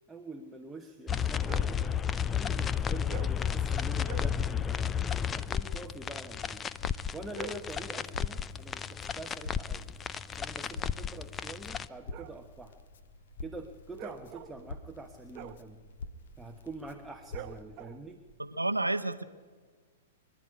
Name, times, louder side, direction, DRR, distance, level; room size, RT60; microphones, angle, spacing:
voice 1, 0.1-2.0 2.3-4.8 5.3-6.7 7.1-9.9 10.4-12.8 13.4-15.8 16.4-18.2, right 2 dB, 5° right, 3 dB, 1.2 m, -45 dB
sound 1, 1.1-11.9, left 8 dB, 20° left, 0.5 m, -32 dB
sound 2, 1.4-1.8 3.0-3.4 4.0-4.4 7.1-7.8 10.3-18.3, right 10 dB, 35° right, 1.0 m, -47 dB
Crackle, 6.7-17.6, left 3 dB, 60° left, 1.5 m, -48 dB
voice 2, 18.4-19.2, right 2 dB, 85° right, 12 dB, 1.0 m, -30 dB
24.5 x 11.5 x 9.8 m, 1.5 s
figure-of-eight pair, 105°, 0 cm